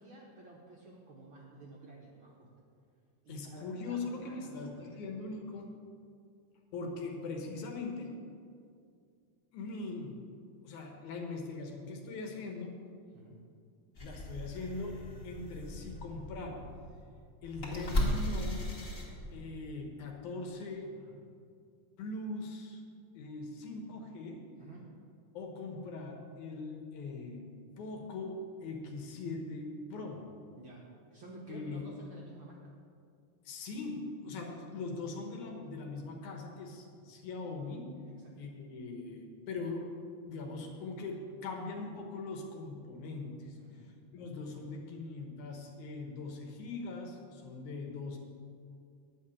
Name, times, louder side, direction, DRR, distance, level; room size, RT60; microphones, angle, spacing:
voice 1, 0.0-2.5 3.2-5.0 13.1-13.4 20.9-21.2 24.6-24.8 30.6-32.7 37.1-37.2 38.0-38.1 43.5-43.9, right 2 dB, 55° right, -3 dB, 1.4 m, -52 dB
voice 2, 3.3-5.7 6.7-8.2 9.5-10.2 10.6-12.8 14.0-16.7 17.4-18.7 19.3-20.9 22.0-22.8 23.2-24.5 25.3-27.5 27.8-30.3 31.5-31.9 33.4-38.0 38.4-39.9 40.3-43.6 44.1-48.2, left 3 dB, 75° left, 2 dB, 2.5 m, -41 dB
sound 1, 13.9-19.6, left 1 dB, 30° left, 2.1 m, -37 dB
10.0 x 5.8 x 8.7 m, 2.3 s
omnidirectional pair, 3.5 m